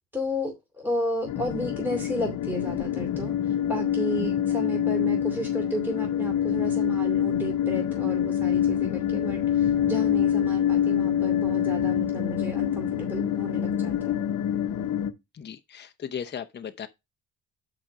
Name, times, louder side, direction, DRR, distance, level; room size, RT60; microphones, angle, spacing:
voice 1, 0.1-3.3 3.7-14.2, equal, 10° right, 2.7 m, -33 dB
sound 1, 1.3-15.1, left 10 dB, 75° left, 1.0 m, -26 dB
voice 2, 15.3-16.9, left 8 dB, 35° left, 0.8 m, -36 dB
6.1 x 5.1 x 5.9 m
cardioid pair, 90°, 30 cm